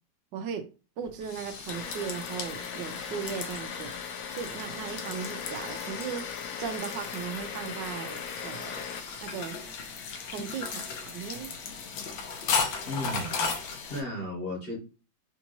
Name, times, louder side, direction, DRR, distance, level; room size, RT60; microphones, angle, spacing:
voice 1, 0.3-0.7 1.0-3.9 4.3-6.3 6.6-8.8 9.2-9.6 10.3-11.5, right 7 dB, 75° right, 1.2 m, -37 dB
sound 1, 1.0-14.0, left 5 dB, 90° left, 1.6 m, -36 dB
sound 2, 1.7-9.0, left 7 dB, 70° left, 0.8 m, -39 dB
voice 2, 12.8-13.5 13.9-14.8, left 1 dB, 35° left, 1.5 m, -34 dB
4.4 x 2.9 x 2.6 m
omnidirectional pair, 2.1 m